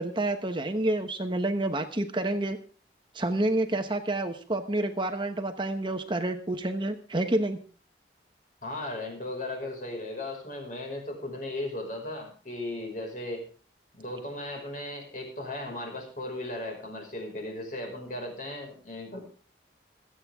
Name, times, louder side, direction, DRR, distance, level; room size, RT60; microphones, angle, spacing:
voice 1, 0.0-2.6 3.1-7.6, right 1 dB, 25° right, 7 dB, 1.1 m, -28 dB
voice 2, 8.6-13.4 13.9-19.2, left 1 dB, 45° left, 2 dB, 5.4 m, -36 dB
26.5 x 8.9 x 3.6 m, 0.39 s
head